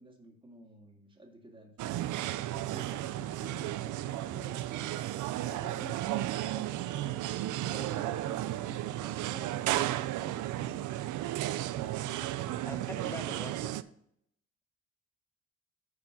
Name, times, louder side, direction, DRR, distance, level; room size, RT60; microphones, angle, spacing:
voice 1, 0.0-2.1 2.5-7.2 7.7-9.7, right 1 dB, 15° right, 2 dB, 2.0 m, -51 dB
sound 1, 1.8-13.8, right 14 dB, 80° right, 0.5 m, -34 dB
voice 2, 12.6-13.7, left 1 dB, 10° left, 9 dB, 0.9 m, -43 dB
9.7 x 4.9 x 5.2 m, 0.72 s
cardioid pair, 90°, 30 cm